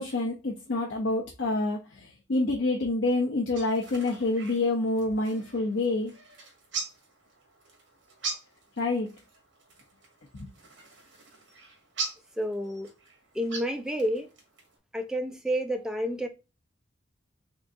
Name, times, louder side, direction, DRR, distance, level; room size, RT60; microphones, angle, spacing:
voice 1, 0.0-6.1 8.8-9.1, left 2 dB, 70° left, 0.8 m, -27 dB
sound 1, 3.5-14.8, right 4 dB, 70° right, 1.6 m, -42 dB
voice 2, 12.4-12.9 13.3-14.3 14.9-16.3, equal, 5° right, 0.5 m, -30 dB
3.8 x 3.5 x 2.6 m
head